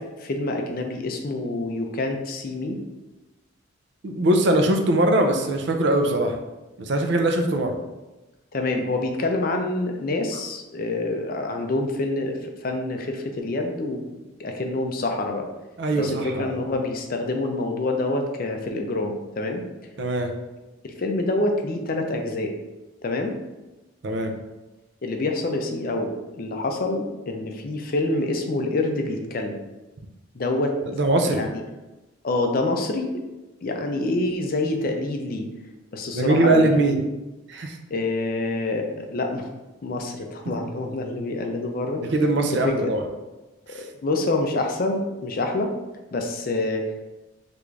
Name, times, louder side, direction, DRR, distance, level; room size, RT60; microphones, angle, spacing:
voice 1, 0.0-2.8 8.5-14.0 14.4-15.5 15.9-19.6 20.8-22.5 23.0-23.4 25.0-29.6 30.4-30.8 31.3-31.6 32.2-33.1 33.6-35.5 35.9-36.9 37.9-39.5 39.8-42.0 42.5-42.9 44.0-45.7 46.1-46.9, left 2 dB, 45° left, 3 dB, 0.4 m, -26 dB
voice 2, 4.0-6.4 6.8-7.8 15.8-16.5 20.0-20.3 24.0-24.4 30.9-31.4 36.1-37.0 37.5-37.8 42.1-43.0 43.7-43.9, right 1 dB, 55° right, 4 dB, 0.4 m, -21 dB
3.4 x 2.5 x 3.1 m, 1.1 s
head